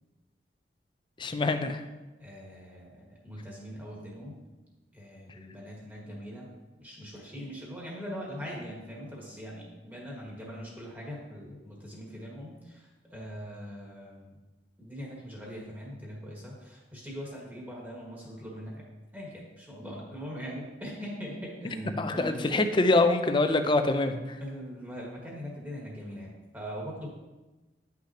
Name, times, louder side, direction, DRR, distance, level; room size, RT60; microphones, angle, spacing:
voice 1, 1.2-1.9 22.0-24.4, left 2 dB, 30° left, 8 dB, 0.5 m, -25 dB
voice 2, 2.2-4.4 4.9-6.5 6.8-14.3 14.8-18.8 19.1-22.4 24.4-27.1, equal, 10° right, -4 dB, 1.7 m, -41 dB
9.9 x 5.9 x 2.9 m, 1.1 s
head